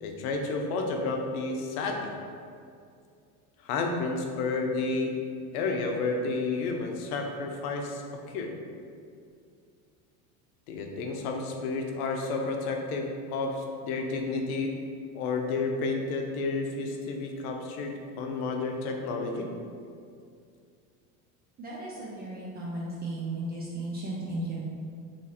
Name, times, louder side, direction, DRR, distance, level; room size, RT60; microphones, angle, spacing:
voice 1, 0.0-2.1 3.6-5.1 5.5-8.5 10.7-14.7 15.1-19.5, left 3 dB, 80° left, 2 dB, 0.7 m, -31 dB
voice 2, 21.6-24.6, right 2 dB, 25° right, -5 dB, 0.3 m, -35 dB
3.1 x 2.4 x 4.2 m, 2.3 s
supercardioid pair, 125°, 43 cm